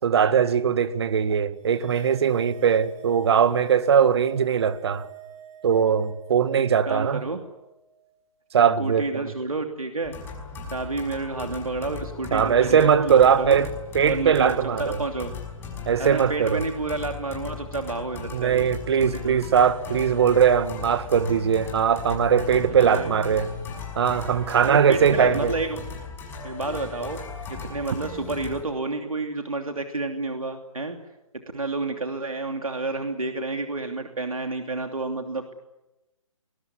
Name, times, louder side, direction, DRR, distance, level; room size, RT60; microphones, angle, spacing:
voice 1, 0.0-5.1 5.6-7.2 8.5-9.3 12.3-13.7 13.9-15.0 15.9-16.6 18.3-23.5 24.0-25.5, right 7 dB, 50° right, 1.8 m, -20 dB
sound 1, 1.6-8.2, right 10 dB, 25° right, 3.9 m, -48 dB
voice 2, 6.5-7.4 8.8-10.1 10.7-13.6 14.0-15.3 16.0-18.7 19.0-19.4 22.7-23.1 24.6-25.8 26.4-27.2 27.5-31.0 31.5-35.5, right 3 dB, 90° right, 2.9 m, -30 dB
sound 2, 10.0-28.6, left 5 dB, 15° left, 5.9 m, -37 dB
24.0 x 21.5 x 9.5 m
figure-of-eight pair, 145°, 17 cm